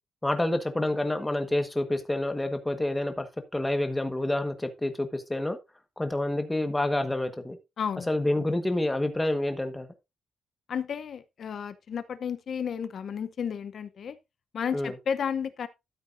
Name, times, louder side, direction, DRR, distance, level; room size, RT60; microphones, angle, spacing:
voice 1, 0.2-3.3 3.5-5.6 6.0-7.6 8.1-9.9 14.7-14.9, left 1 dB, 10° left, 1.4 m, -28 dB
voice 2, 7.8-8.1 10.7-14.2 14.5-15.7, left 7 dB, 50° left, 0.8 m, -32 dB
13.0 x 7.9 x 2.6 m
cardioid pair, 150°, 0 cm